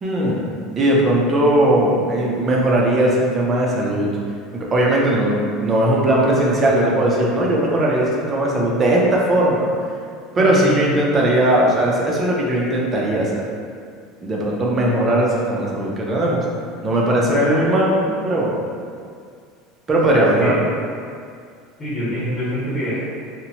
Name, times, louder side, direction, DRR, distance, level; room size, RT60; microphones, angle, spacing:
voice 1, 0.0-4.1 4.5-9.7 10.4-13.4 14.2-16.4 16.8-18.5 19.9-20.5, right 1 dB, 20° right, -3 dB, 0.4 m, -18 dB
voice 2, 10.3-10.9 17.3-17.5 20.1-20.6 21.8-23.1, equal, 25° left, -11 dB, 0.9 m, -24 dB
2.8 x 2.0 x 2.7 m, 2.2 s
cardioid pair, 170°, 0 cm